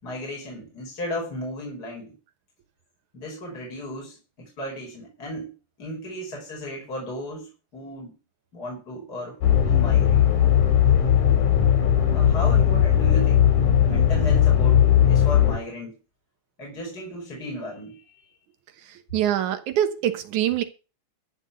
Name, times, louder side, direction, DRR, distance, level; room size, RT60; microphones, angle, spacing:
voice 1, 0.0-2.1 3.1-8.1 8.5-10.2 12.1-13.5 13.8-15.9 16.6-18.2, equal, 30° left, 5.1 m, -35 dB
sound 1, 9.4-15.6, left 9 dB, 85° left, 3.7 m, -18 dB
voice 2, 18.8-20.6, right 11 dB, 85° right, 2.7 m, -24 dB
14.5 x 5.4 x 8.0 m
omnidirectional pair, 3.4 m